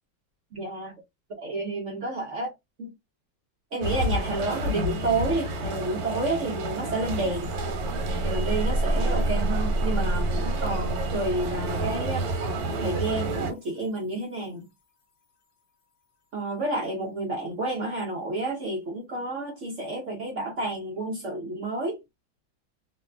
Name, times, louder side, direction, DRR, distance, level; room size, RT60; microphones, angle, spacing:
voice 1, 0.5-0.9 1.3-2.5 2.8-2.9 3.7-7.5 8.2-12.3 12.8-14.7 16.3-22.0, right 2 dB, 60° right, 0.8 m, -30 dB
sound 1, 3.8-13.5, right 1 dB, 85° right, 1.6 m, -30 dB
sound 2, 8.2-13.7, right 1 dB, 75° left, 0.6 m, -30 dB
3.4 x 2.2 x 2.4 m
omnidirectional pair, 2.1 m